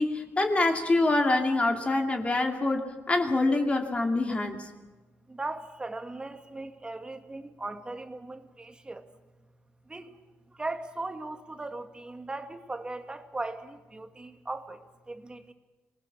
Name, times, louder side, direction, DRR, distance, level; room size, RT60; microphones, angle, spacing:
voice 1, 0.0-4.6, left 2 dB, 25° left, 3 dB, 2.6 m, -25 dB
voice 2, 5.3-9.0 9.9-10.1 10.6-14.8 15.1-15.5, right 2 dB, 20° right, 7 dB, 2.0 m, -38 dB
26.0 x 20.0 x 7.4 m, 1.2 s
cardioid pair, 100°, 5 cm